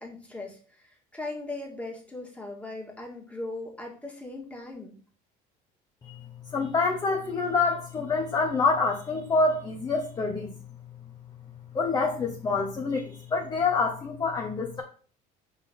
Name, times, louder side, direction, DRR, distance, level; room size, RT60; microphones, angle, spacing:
voice 1, 0.0-4.9, left 2 dB, 5° left, -1 dB, 2.0 m, -39 dB
voice 2, 6.5-10.5 11.7-14.8, left 4 dB, 25° left, 2 dB, 0.9 m, -26 dB
5.8 x 4.1 x 5.4 m, 0.41 s
cardioid pair, 135°, 17 cm